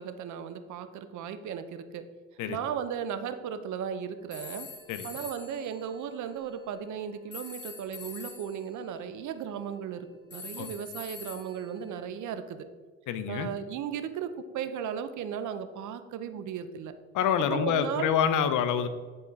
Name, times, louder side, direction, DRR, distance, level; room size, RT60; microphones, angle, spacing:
voice 1, 0.0-2.0 2.5-4.7 5.0-12.7 13.3-16.9 17.5-18.2, right 8 dB, 75° right, 10 dB, 0.7 m, -36 dB
sound 1, 4.3-6.5 7.3-8.7 10.3-12.0, left 4 dB, 35° left, 1.4 m, -45 dB
voice 2, 13.1-13.5 17.1-18.9, left 8 dB, 85° left, 11 dB, 0.6 m, -26 dB
9.6 x 4.3 x 3.6 m, 1.5 s
cardioid pair, 90°, 30 cm